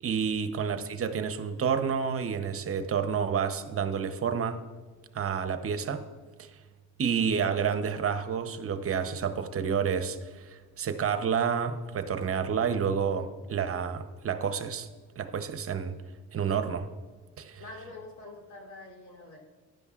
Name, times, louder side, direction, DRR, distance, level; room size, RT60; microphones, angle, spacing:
voice 1, 0.0-4.6 5.1-6.0 6.4-6.5 7.0-14.9 15.2-16.0 16.3-16.9 17.4-17.6, right 7 dB, 50° right, 10 dB, 0.8 m, -29 dB
voice 2, 17.6-19.4, left 2 dB, 70° left, 0 dB, 3.2 m, -45 dB
15.0 x 10.5 x 2.4 m, 1.4 s
cardioid pair, 90°, 30 cm